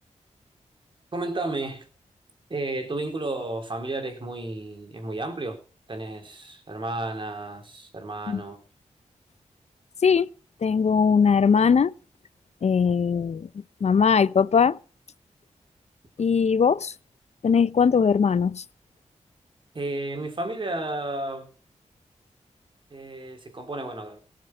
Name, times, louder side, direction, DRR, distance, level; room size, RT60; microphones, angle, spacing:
voice 1, 1.1-1.9 2.5-5.6 5.9-8.6 19.7-21.5 22.9-24.2, right 2 dB, 40° right, 3.7 m, -32 dB
voice 2, 10.6-11.9 12.6-13.5 13.8-14.8 16.2-16.9 17.4-18.6, left 6 dB, 60° left, 0.6 m, -20 dB
18.0 x 7.4 x 6.0 m
wide cardioid pair, 85°, 13 cm